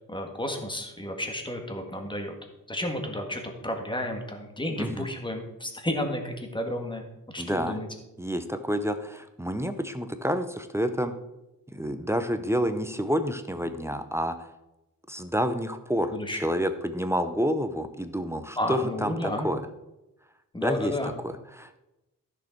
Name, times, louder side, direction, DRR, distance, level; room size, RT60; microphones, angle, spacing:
voice 1, 0.1-2.3 2.7-7.9 16.1-16.4 18.6-19.5 20.5-21.2, left 1 dB, 15° left, 3 dB, 1.7 m, -32 dB
voice 2, 4.8-5.1 7.4-7.8 8.2-11.1 11.7-14.5 15.1-19.6 20.6-21.8, equal, 10° right, 8 dB, 0.7 m, -29 dB
13.5 x 6.5 x 4.5 m, 0.94 s
wide cardioid pair, 135°, 35 cm